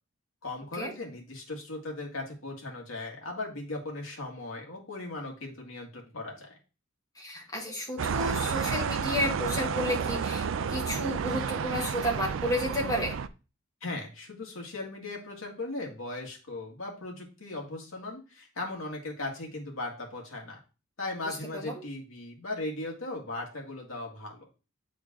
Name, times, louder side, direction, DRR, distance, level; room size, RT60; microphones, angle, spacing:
voice 1, 0.4-6.6 13.8-20.6 21.0-24.5, left 2 dB, 90° left, 0 dB, 1.9 m, -38 dB
voice 2, 7.2-13.1 21.3-21.7, left 1 dB, 20° left, -1 dB, 1.8 m, -32 dB
sound 1, 8.0-13.3, right 6 dB, 75° right, 0.4 m, -31 dB
8.5 x 3.8 x 3.6 m, 0.33 s
head